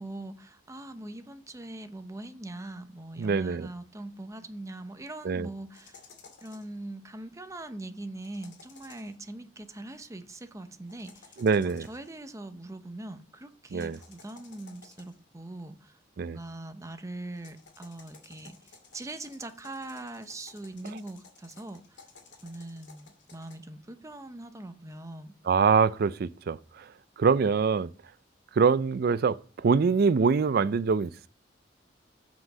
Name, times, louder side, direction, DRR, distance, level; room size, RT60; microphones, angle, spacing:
voice 1, 0.0-6.1 6.4-22.1 22.4-25.3, right 2 dB, 15° right, 0.7 m, -42 dB
voice 2, 3.2-3.7 5.2-5.5 11.4-11.9 13.7-14.0 16.2-16.4 25.5-26.9 27.2-27.9 28.6-31.3, right 5 dB, 60° right, 0.4 m, -24 dB
sound 1, 5.7-6.8 8.2-9.2 10.9-12.1 13.7-15.3 17.3-23.5, left 5 dB, 80° left, 2.4 m, -55 dB
7.5 x 6.1 x 5.0 m
head